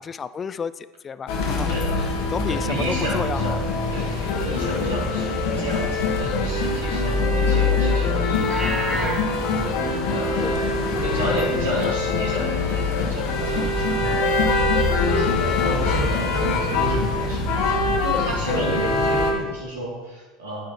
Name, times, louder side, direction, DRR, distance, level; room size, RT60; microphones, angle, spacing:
voice 1, 0.0-3.4 7.5-7.8 10.4-10.7 15.6-15.9, left 6 dB, 30° left, 16 dB, 0.3 m, -32 dB
sound 1, 1.3-19.3, left 3 dB, 60° left, 1.4 m, -23 dB
voice 2, 2.5-8.7 9.0-9.1 10.1-13.9 14.8-20.7, equal, 80° right, -5 dB, 3.2 m, -32 dB
Livestock farm animals working animals, 8.3-9.2, right 2 dB, 20° right, 2.2 m, -28 dB
sound 2, 8.4-17.4, right 1 dB, 45° right, 3.5 m, -45 dB
9.7 x 9.3 x 3.3 m, 1.2 s
hypercardioid pair, 75°, 0 cm